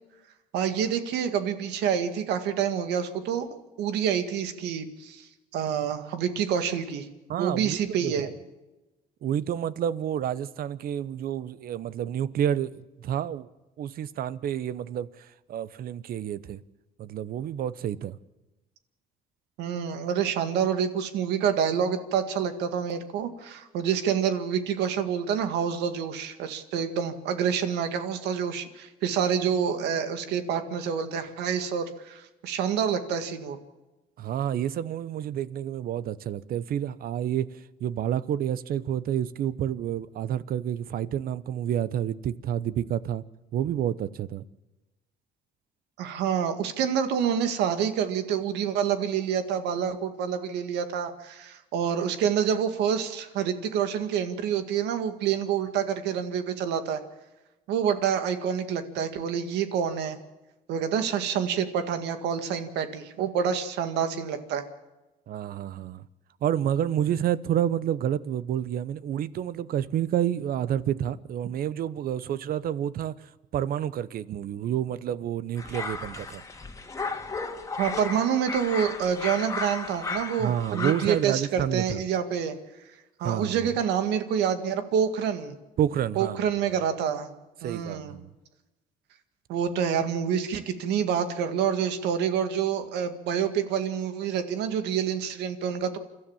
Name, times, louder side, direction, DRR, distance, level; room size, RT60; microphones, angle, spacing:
voice 1, 0.5-3.5 3.8-7.1 7.4-8.3 19.6-33.6 46.0-57.0 57.7-60.2 60.7-64.6 77.8-82.5 83.2-85.6 86.2-87.3 87.6-88.1 89.5-96.0, right 8 dB, 85° right, 1.9 m, -27 dB
voice 2, 7.3-8.3 9.2-13.5 13.8-16.6 17.0-18.2 34.2-43.2 43.5-44.4 65.3-66.0 66.4-73.2 73.5-76.4 80.4-82.0 83.2-83.7 85.8-86.5 87.6-88.3, right 10 dB, 60° right, 0.9 m, -29 dB
sound 1, 75.6-81.2, left 3 dB, 20° left, 2.2 m, -35 dB
29.5 x 13.0 x 7.2 m
cardioid pair, 110°, 17 cm